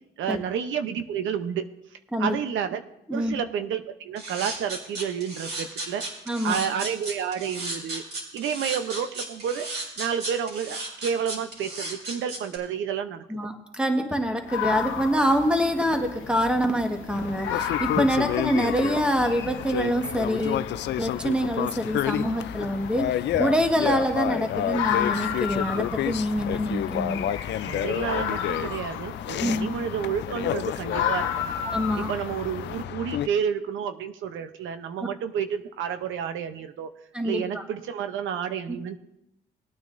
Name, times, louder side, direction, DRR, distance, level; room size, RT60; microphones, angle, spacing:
voice 1, 0.2-1.7 2.2-2.8 3.1-6.0 6.4-8.0 8.3-9.7 10.0-13.2 27.6-31.5 31.9-36.9 37.2-39.0, right 8 dB, 80° right, 9 dB, 0.8 m, -30 dB
sound 1, 4.2-12.6, right 2 dB, 60° right, 3.9 m, -34 dB
voice 2, 6.3-6.6 13.3-20.7 21.0-27.4 29.4-29.7 31.7-32.1 37.1-37.6, equal, 5° right, 4 dB, 1.5 m, -25 dB
sound 2, 14.5-32.8, left 8 dB, 80° left, 1.0 m, -34 dB
sound 3, 17.1-33.3, left 11 dB, 60° left, 0.4 m, -30 dB
20.0 x 9.3 x 2.6 m, 0.83 s
cardioid pair, 90°, 20 cm